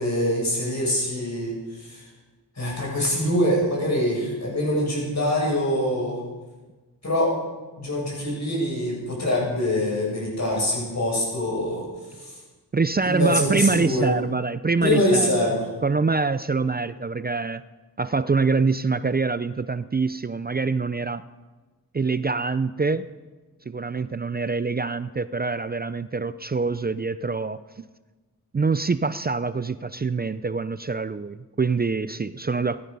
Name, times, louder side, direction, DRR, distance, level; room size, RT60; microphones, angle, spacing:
voice 1, 0.0-2.1 2.5-6.2 7.0-7.3 7.8-12.4 13.0-14.1 14.8-15.7, left 1 dB, 45° left, -3 dB, 6.8 m, -24 dB
voice 2, 12.7-15.3 15.8-17.6 18.0-21.2 21.9-23.1 23.7-27.6 28.5-32.8, right 4 dB, 25° right, 14 dB, 0.4 m, -25 dB
16.5 x 12.5 x 5.5 m, 1.2 s
wide cardioid pair, 95°, 38 cm